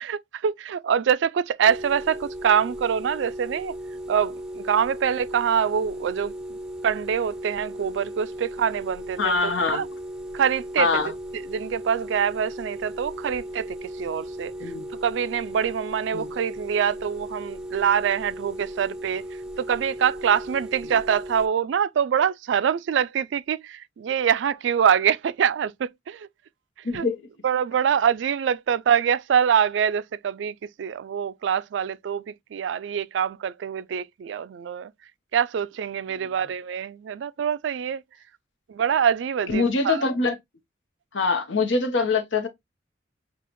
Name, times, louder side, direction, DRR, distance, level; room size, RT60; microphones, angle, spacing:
voice 1, 0.0-3.7 4.1-6.3 6.8-9.9 10.3-11.1 11.5-14.5 15.0-19.2 19.6-26.3 26.9-27.0 27.4-34.9 35.3-38.0 38.7-40.1, right 8 dB, 75° right, 0.3 m, -25 dB
sound 1, 1.6-21.5, equal, 5° right, 0.5 m, -37 dB
voice 2, 9.2-9.8 10.8-11.1 14.6-14.9 16.1-16.3 26.8-27.3 36.1-36.3 39.5-40.4 41.1-42.5, left 4 dB, 90° left, 1.0 m, -24 dB
6.9 x 2.4 x 3.0 m
head